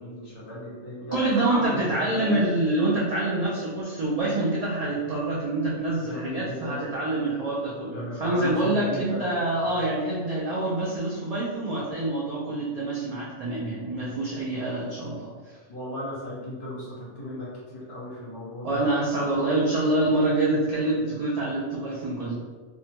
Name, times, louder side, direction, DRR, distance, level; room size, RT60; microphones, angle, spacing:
voice 1, 0.0-2.4 6.0-6.8 7.9-9.3 9.6-9.9 15.7-17.5 17.7-18.9, left 1 dB, 50° left, -8 dB, 1.1 m, -35 dB
voice 2, 1.1-15.3 18.6-22.3, right 2 dB, 80° right, -7 dB, 0.3 m, -26 dB
2.6 x 2.1 x 2.8 m, 1.5 s
omnidirectional pair, 1.3 m